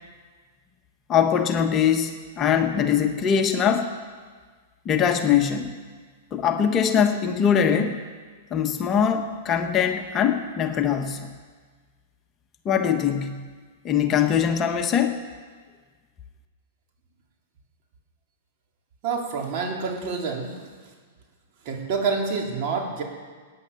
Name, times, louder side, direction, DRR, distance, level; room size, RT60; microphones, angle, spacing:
voice 1, 1.1-3.9 4.8-5.7 6.3-8.0 8.5-11.3 12.6-13.4 13.8-15.2, left 8 dB, 30° left, 5 dB, 1.2 m, -22 dB
voice 2, 19.0-20.6 21.7-23.0, right 4 dB, 45° right, 0 dB, 3.5 m, -27 dB
18.0 x 9.7 x 7.1 m, 1.5 s
hypercardioid pair, 120°, 0 cm